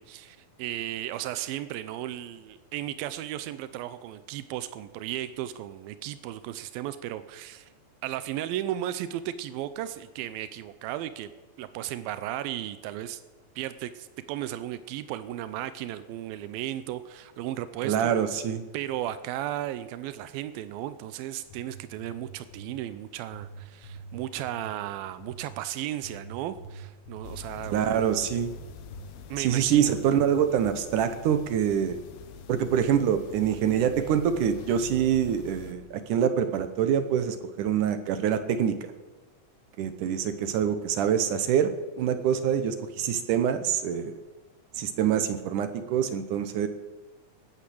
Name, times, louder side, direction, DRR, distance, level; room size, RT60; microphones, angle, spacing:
voice 1, 0.0-7.7 8.0-11.3 11.6-13.2 13.6-18.1 18.7-27.8 29.3-29.9, right 13 dB, 90° right, 13 dB, 2.5 m, -35 dB
voice 2, 17.8-18.6 27.7-28.5 29.4-32.0 32.5-38.9 39.8-41.7 42.0-44.2 44.8-46.7, right 9 dB, 70° right, 10 dB, 2.2 m, -25 dB
sound 1, 21.5-22.8 23.3-24.7 25.2-25.6 26.0-28.2 28.4-29.1, right 4 dB, 50° left, 2.1 m, -44 dB
sound 2, 27.2-35.7, left 7 dB, 90° left, 2.8 m, -45 dB
18.5 x 8.8 x 7.7 m, 1.2 s
omnidirectional pair, 4.1 m